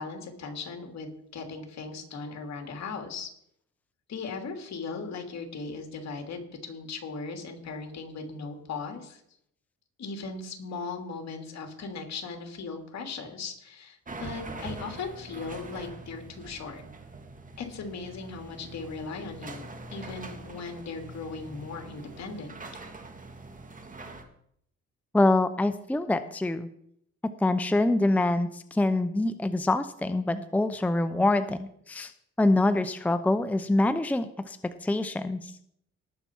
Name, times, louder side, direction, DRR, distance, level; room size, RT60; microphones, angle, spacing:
voice 1, 0.0-3.3 4.1-9.2 10.0-16.8 17.6-22.5, left 4 dB, 60° left, 4 dB, 2.7 m, -38 dB
sound 1, 14.1-24.2, right 3 dB, 25° right, 2.1 m, -43 dB
voice 2, 25.1-26.7 27.4-32.1 32.4-34.6 34.8-35.5, left 2 dB, 5° left, 11 dB, 0.6 m, -25 dB
19.0 x 6.9 x 4.5 m, 0.70 s
cardioid pair, 90°, 30 cm